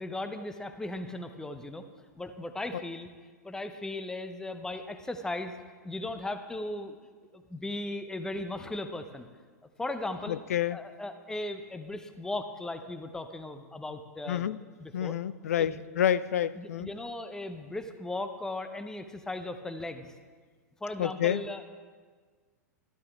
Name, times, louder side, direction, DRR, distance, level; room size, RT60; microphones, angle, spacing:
voice 1, 0.0-1.8 2.2-3.1 3.4-5.5 5.8-7.0 7.3-9.3 9.8-10.4 10.7-14.5 14.8-15.1 15.6-15.8 16.6-20.1 20.8-21.6, left 2 dB, 5° left, 9 dB, 0.7 m, -37 dB
voice 2, 10.3-10.8 14.3-14.6 14.9-16.9 21.0-21.4, left 10 dB, 60° left, 16 dB, 0.4 m, -28 dB
13.5 x 12.5 x 3.5 m, 1.5 s
figure-of-eight pair, 95°, 9 cm